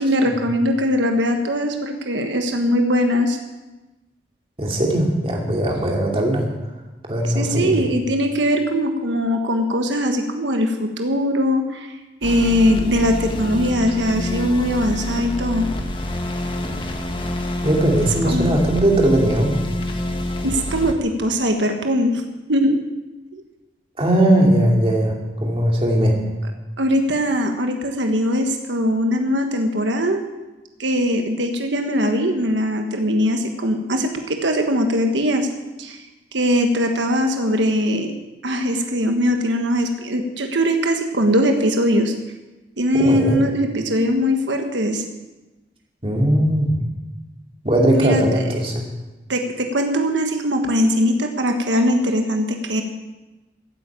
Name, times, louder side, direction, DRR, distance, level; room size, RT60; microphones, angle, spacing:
voice 1, 0.0-3.4 7.3-12.0 12.2-15.7 18.2-18.7 20.4-22.2 22.5-22.8 23.3-23.4 26.8-30.2 30.8-35.5 35.8-36.0 36.3-38.1 38.4-42.1 42.8-45.0 47.9-48.4 49.3-52.8, equal, 85° right, 4 dB, 1.4 m, -21 dB
voice 2, 4.6-6.5 7.1-7.8 17.6-19.6 24.0-25.1 25.4-26.2 42.9-43.4 46.0-46.8 47.6-48.9, right 1 dB, 30° right, 0 dB, 2.6 m, -19 dB
sound 1, 12.2-20.9, left 1 dB, 25° left, 1.4 m, -27 dB
14.5 x 8.4 x 8.8 m, 1.1 s
head